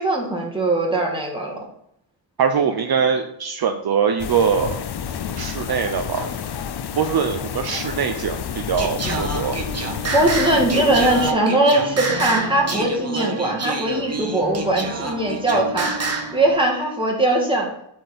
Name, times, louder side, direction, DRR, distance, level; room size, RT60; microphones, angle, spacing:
voice 1, 0.0-1.6 10.1-15.9 16.3-17.7, right 1 dB, 10° right, -2 dB, 2.4 m, -20 dB
voice 2, 2.4-4.8 5.4-6.3 7.0-9.6, right 6 dB, 55° right, 6 dB, 0.7 m, -22 dB
sound 1, 4.2-11.3, left 8 dB, 60° left, 0.6 m, -30 dB
Singing, 8.8-16.4, right 3 dB, 35° right, 1.5 m, -28 dB
sound 2, 9.1-16.6, right 2 dB, 85° right, 1.4 m, -34 dB
7.7 x 4.5 x 6.7 m, 0.76 s
wide cardioid pair, 110°, 44 cm